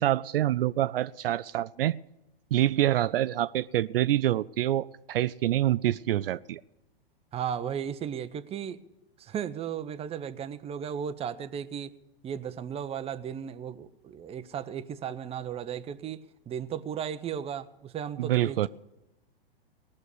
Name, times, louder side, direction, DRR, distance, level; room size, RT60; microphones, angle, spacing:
voice 1, 0.0-2.0 2.5-6.6 18.2-18.7, right 13 dB, 70° right, 0.5 m, -26 dB
voice 2, 7.3-8.8 9.2-11.9 12.2-18.7, right 8 dB, 20° right, 0.8 m, -35 dB
19.0 x 6.5 x 9.6 m
hypercardioid pair, 110°, 30 cm